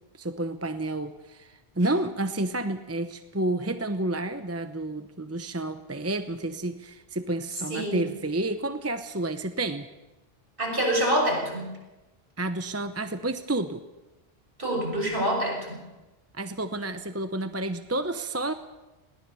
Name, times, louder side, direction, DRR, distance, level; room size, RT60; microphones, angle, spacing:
voice 1, 0.2-9.9 12.4-13.8 16.3-18.5, right 2 dB, 15° right, 9 dB, 0.8 m, -30 dB
voice 2, 7.7-8.0 10.6-11.7 14.6-15.8, right 1 dB, 60° right, -1 dB, 6.9 m, -26 dB
21.0 x 17.5 x 7.0 m, 1.1 s
omnidirectional pair, 1.0 m